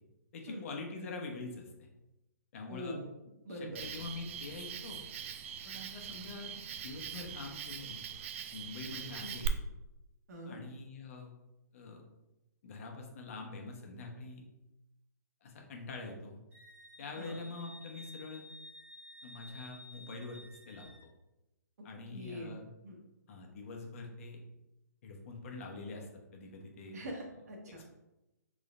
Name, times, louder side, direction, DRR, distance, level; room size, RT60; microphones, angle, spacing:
voice 1, 0.3-1.7 2.5-3.0 3.5-5.0 5.6-8.0 8.5-9.6 10.5-11.3 11.7-12.0 12.6-14.4 15.4-16.4 17.0-18.4 19.2-20.9 21.8-22.7 23.3-24.4 25.0-27.0, left 3 dB, 50° left, 1 dB, 1.0 m, -45 dB
voice 2, 2.7-3.1 3.4-3.8 9.1-9.4 10.3-10.6 17.2-17.4 22.1-23.0 26.9-27.8, equal, 60° right, 1 dB, 1.3 m, -43 dB
Cricket, 3.8-9.5, right 9 dB, 45° right, 0.4 m, -42 dB
Wind instrument woodwind instrument, 16.5-21.1, left 1 dB, 20° right, 1.5 m, -53 dB
5.3 x 3.7 x 2.5 m, 0.96 s
hypercardioid pair, 135°, 10 cm